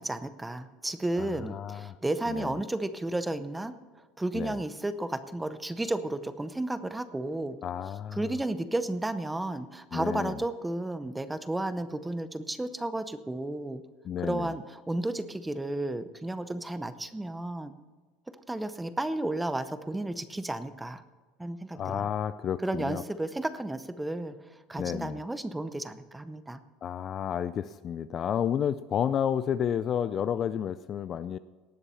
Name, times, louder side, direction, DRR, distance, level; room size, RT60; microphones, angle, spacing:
voice 1, 0.0-3.7 4.2-7.6 8.1-13.8 14.2-17.7 18.5-21.0 21.4-22.1 22.6-24.3 24.7-26.6, right 2 dB, 5° right, 12 dB, 0.6 m, -33 dB
voice 2, 1.2-2.0 2.3-2.5 4.3-4.6 7.6-8.3 9.9-10.4 14.0-14.5 21.7-23.0 24.8-25.2 26.8-31.4, left 9 dB, 30° left, 14 dB, 0.3 m, -31 dB
18.5 x 7.1 x 5.6 m, 1.4 s
cardioid pair, 155°, 0 cm